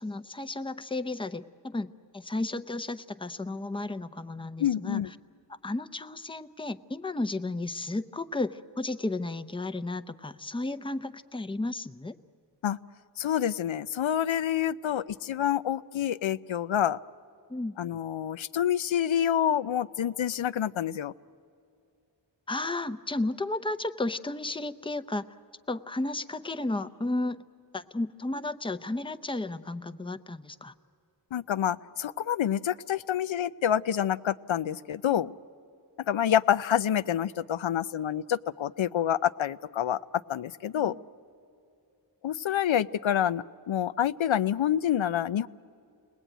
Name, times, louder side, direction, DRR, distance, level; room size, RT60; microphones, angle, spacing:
voice 1, 0.0-5.0 5.5-12.1 17.5-17.8 22.5-25.3 25.7-27.4 27.7-30.7 35.0-35.2 40.7-41.0, left 2 dB, 10° left, 11 dB, 0.6 m, -33 dB
voice 2, 4.6-5.1 12.6-12.8 13.2-17.0 17.8-21.1 31.3-35.3 36.1-40.0 40.3-41.0 42.2-45.5, left 10 dB, 90° left, 14 dB, 0.6 m, -27 dB
30.0 x 20.0 x 9.1 m, 2.5 s
wide cardioid pair, 65°, 45 cm